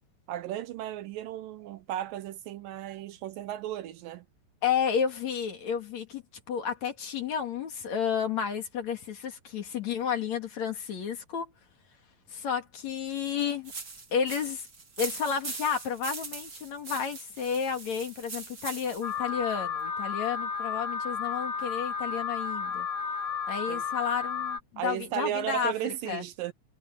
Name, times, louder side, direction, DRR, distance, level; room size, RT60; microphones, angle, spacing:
voice 1, 0.3-4.3 23.7-23.8 24.8-26.5, right 12 dB, 75° right, 2.3 m, -35 dB
voice 2, 4.6-6.2 6.5-11.5 12.3-13.7 14.1-14.7 15.0-22.9 23.5-26.2, left 7 dB, 50° left, 3.1 m, -31 dB
sound 1, 13.6-19.2, right 4 dB, 30° right, 2.3 m, -41 dB
Alarm, 19.0-24.6, left 5 dB, 35° left, 1.2 m, -32 dB
omnidirectional pair, 4.3 m